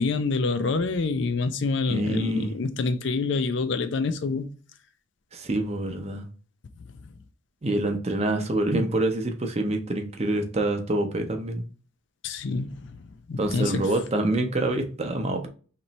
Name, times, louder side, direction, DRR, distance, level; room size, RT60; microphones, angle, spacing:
voice 1, 0.0-4.5 6.9-7.0 12.2-12.9 13.3-13.9, left 4 dB, 60° left, 0.4 m, -27 dB
voice 2, 1.9-2.5 5.3-6.2 7.6-11.6 13.4-15.5, right 1 dB, 30° right, 0.6 m, -26 dB
3.1 x 3.0 x 4.0 m
head